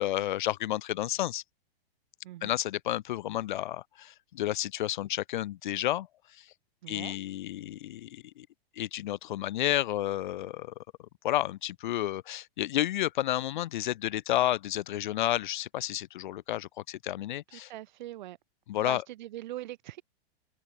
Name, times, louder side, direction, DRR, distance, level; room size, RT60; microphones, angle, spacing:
voice 1, 0.0-1.4 2.4-6.1 6.3-6.5 6.9-8.5 8.8-10.7 11.2-17.7 18.7-19.0, left 13 dB, 50° left, 2.7 m, -31 dB
voice 2, 2.2-2.5 6.8-7.2 17.5-18.4 18.8-20.0, right 14 dB, 50° right, 4.7 m, -41 dB
open air
supercardioid pair, 170°, 30 cm